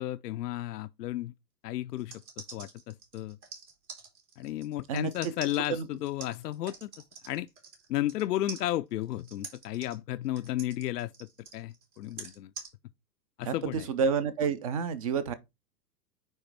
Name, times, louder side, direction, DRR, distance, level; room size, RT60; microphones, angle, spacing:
voice 1, 0.0-1.3 1.6-3.4 4.4-6.9 7.2-7.5 7.9-11.3 11.5-12.5 13.4-13.9, left 14 dB, 70° left, 0.5 m, -33 dB
sound 1, 1.9-8.2 8.5-12.7, right 5 dB, 75° right, 3.2 m, -46 dB
voice 2, 13.4-15.3, right 6 dB, 25° right, 0.3 m, -29 dB
9.0 x 3.2 x 4.4 m
hypercardioid pair, 105°, 49 cm